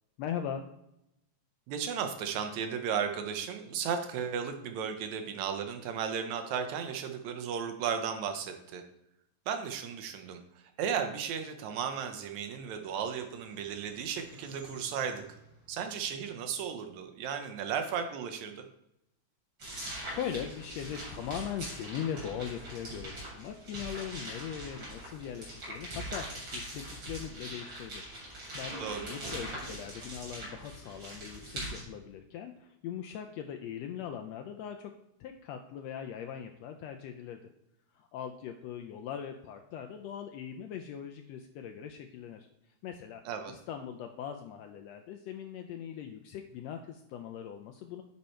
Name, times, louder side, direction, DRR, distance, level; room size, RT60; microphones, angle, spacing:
voice 1, 0.2-0.7 20.2-34.9 35.2-37.4 37.9-42.5 42.8-43.2 43.5-48.0, left 9 dB, 80° left, 5 dB, 1.5 m, -40 dB
voice 2, 1.7-8.8 9.5-15.2 15.7-18.6 28.8-29.1 43.3-43.5, right 7 dB, 75° right, 6 dB, 2.0 m, -35 dB
sound 1, 12.3-17.3, equal, 5° right, 1.6 m, -58 dB
sound 2, 19.6-31.8, right 1 dB, 45° right, 3.8 m, -42 dB
9.7 x 4.2 x 4.4 m, 0.83 s
omnidirectional pair, 3.4 m